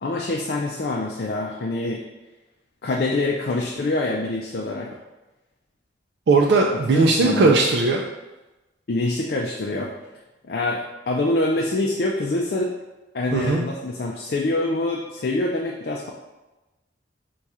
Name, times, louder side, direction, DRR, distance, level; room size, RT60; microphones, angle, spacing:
voice 1, 0.0-2.0 2.8-4.9 6.9-7.5 8.9-9.9 10.5-12.7 13.1-16.1, left 2 dB, 60° left, -1 dB, 0.4 m, -25 dB
voice 2, 6.3-8.0 13.3-13.7, right 3 dB, 70° right, -1 dB, 0.4 m, -18 dB
4.7 x 2.4 x 4.1 m, 1.1 s
head